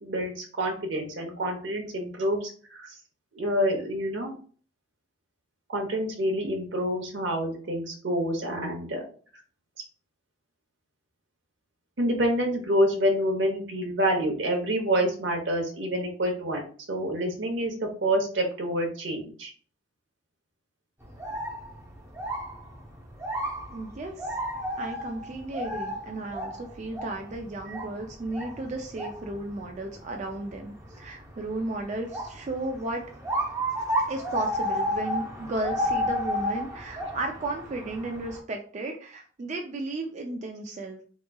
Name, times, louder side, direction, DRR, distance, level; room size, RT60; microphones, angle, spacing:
voice 1, 0.0-2.9 3.3-4.3 5.7-9.0 12.0-16.6 16.9-19.5 27.7-27.8, equal, 75° right, 3 dB, 0.9 m, -27 dB
sound 1, 21.0-38.4, equal, 15° right, 0.7 m, -33 dB
voice 2, 23.7-24.4 24.8-33.0 34.1-41.0, right 2 dB, 40° right, 3 dB, 0.3 m, -34 dB
3.5 x 3.0 x 2.2 m, 0.44 s
head